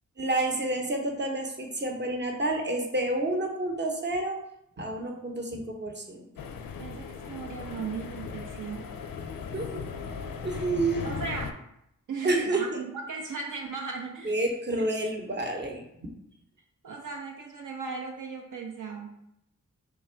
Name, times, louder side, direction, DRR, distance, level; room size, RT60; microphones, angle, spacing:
voice 1, 0.2-4.4 4.8-6.3 9.5-9.9 10.4-11.1 12.2-12.6 14.2-16.1, right 2 dB, 30° right, 2 dB, 0.8 m, -29 dB
sound 1, 6.4-11.5, left 5 dB, 75° left, 0.5 m, -37 dB
voice 2, 6.8-8.9 11.0-11.6 12.1-14.5 14.8-14.9 16.8-19.2, right 4 dB, 60° right, 1 dB, 0.6 m, -37 dB
3.3 x 2.3 x 4.3 m, 0.79 s
cardioid pair, 45°, 34 cm